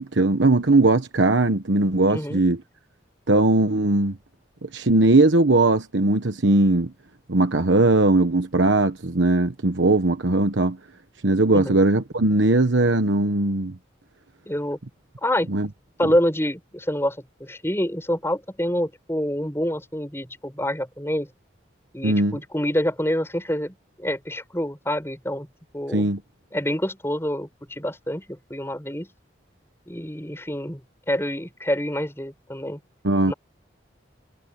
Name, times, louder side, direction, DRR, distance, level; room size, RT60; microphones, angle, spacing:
voice 1, 0.0-2.6 3.3-4.2 4.6-6.9 7.3-10.8 11.2-13.7 15.5-15.7 22.0-22.4 25.9-26.2 33.0-33.3, right 2 dB, 80° right, 1.2 m, -19 dB
voice 2, 2.1-2.4 11.5-11.8 14.5-14.8 15.2-15.5 16.0-21.3 21.9-25.5 25.7-26.0 26.5-29.1 29.9-30.8 31.1-32.8 33.3-33.4, equal, 15° left, 7.3 m, -27 dB
head